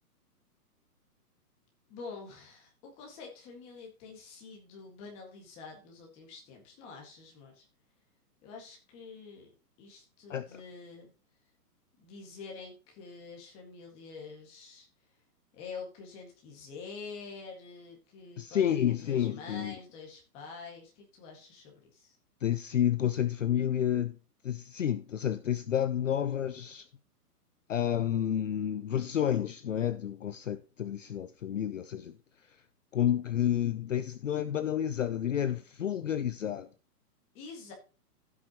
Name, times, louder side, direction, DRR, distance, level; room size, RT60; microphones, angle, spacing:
voice 1, 1.9-7.7 8.4-9.5 9.8-11.1 12.0-14.9 15.5-22.2 37.3-37.7, left 4 dB, 10° left, 1.8 m, -47 dB
voice 2, 18.4-19.8 22.4-24.2 24.4-26.9 27.7-32.2 32.5-32.6 32.9-36.7, left 10 dB, 50° left, 0.6 m, -30 dB
16.0 x 6.1 x 2.9 m
hypercardioid pair, 180°, 47 cm